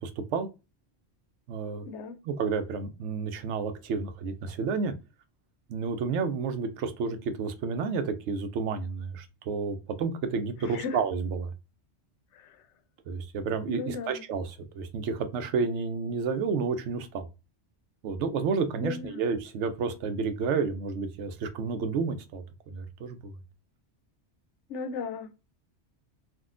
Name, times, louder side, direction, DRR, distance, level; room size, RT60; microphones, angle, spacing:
voice 1, 0.0-0.5 1.5-1.9 2.2-4.9 5.7-11.5 13.1-17.3 18.0-23.3, right 5 dB, 90° right, 0.9 m, -31 dB
voice 2, 1.9-2.2 10.6-11.0 12.3-12.6 13.7-14.2 18.8-19.2 24.7-25.3, left 4 dB, 85° left, 0.9 m, -35 dB
3.6 x 2.3 x 2.4 m
omnidirectional pair, 1.2 m